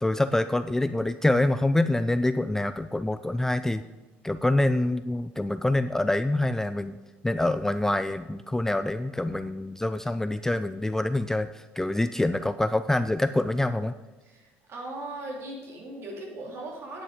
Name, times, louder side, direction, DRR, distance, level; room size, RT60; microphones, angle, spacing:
voice 1, 0.0-3.8 4.2-7.0 7.2-13.9, left 1 dB, 10° left, 12 dB, 0.3 m, -26 dB
voice 2, 14.2-17.0, right 2 dB, 50° right, -1 dB, 3.4 m, -38 dB
9.3 x 8.8 x 5.2 m, 1.2 s
supercardioid pair, 85°, 6 cm